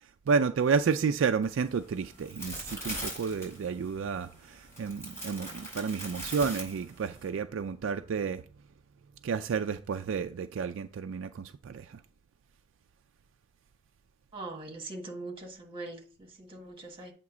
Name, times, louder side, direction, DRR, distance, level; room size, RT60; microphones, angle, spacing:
voice 1, 0.0-8.4 9.2-12.0, right 5 dB, 70° right, 0.4 m, -31 dB
sound 1, 1.4-7.3, equal, 15° left, 4.3 m, -42 dB
voice 2, 14.3-17.1, right 2 dB, 25° right, 1.4 m, -42 dB
8.2 x 2.9 x 6.0 m
head